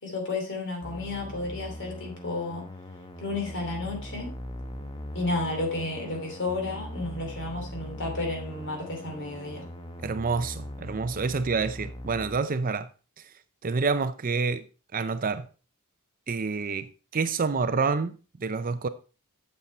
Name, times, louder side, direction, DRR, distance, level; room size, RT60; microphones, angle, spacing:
voice 1, 0.0-2.7 3.2-4.3 5.1-9.7, left 2 dB, 55° left, 3.0 m, -32 dB
sound 1, 0.8-12.4, equal, 20° left, 0.9 m, -40 dB
voice 2, 10.0-12.9 13.6-14.6 14.9-15.5 16.3-16.9 17.1-18.9, right 4 dB, 40° right, 0.5 m, -28 dB
8.4 x 6.9 x 4.3 m
head